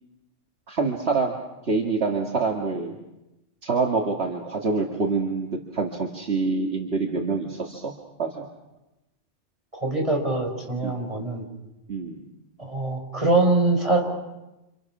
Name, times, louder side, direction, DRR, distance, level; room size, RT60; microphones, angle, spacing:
voice 1, 0.7-1.3 1.7-3.0 3.6-5.5 5.7-7.9 8.2-8.5 10.8-11.0 11.9-12.2, right 4 dB, 60° right, 0 dB, 2.3 m, -26 dB
voice 2, 9.7-11.4 12.6-14.0, right 2 dB, 30° right, 1 dB, 5.5 m, -23 dB
30.0 x 28.0 x 6.1 m, 1.0 s
omnidirectional pair, 1.2 m